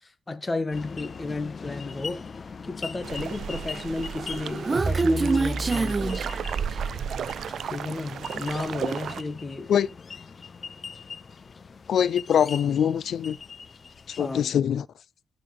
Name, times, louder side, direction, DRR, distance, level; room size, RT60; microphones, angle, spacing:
voice 1, 0.0-2.3 2.7-6.3 7.7-9.7 14.2-14.5, left 2 dB, 30° left, 1.7 m, -33 dB
sound 1, 0.7-14.5, left 5 dB, 50° left, 0.9 m, -41 dB
sound 2, 3.0-9.2, right 8 dB, 75° right, 0.4 m, -35 dB
Human voice, 4.1-7.1, right 3 dB, 35° right, 0.6 m, -26 dB
voice 2, 11.9-13.4 14.2-14.8, left 9 dB, 75° left, 0.5 m, -23 dB
14.5 x 5.1 x 5.2 m
cardioid pair, 70°, 0 cm